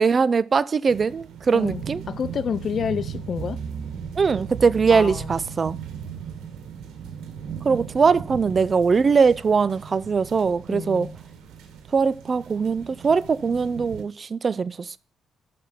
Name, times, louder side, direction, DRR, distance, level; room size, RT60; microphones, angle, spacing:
voice 1, 0.0-2.0 4.2-5.8 7.6-11.1 11.9-15.0, right 5 dB, 40° right, 0.4 m, -21 dB
sound 1, 0.9-14.0, right 7 dB, 85° right, 1.8 m, -39 dB
voice 2, 1.5-3.6 4.9-5.3 10.0-10.1 10.7-11.1, left 7 dB, 55° left, 0.5 m, -29 dB
sound 2, 1.7-6.2, right 7 dB, 65° right, 2.5 m, -36 dB
6.8 x 5.8 x 6.6 m
cardioid pair, 90°, 0 cm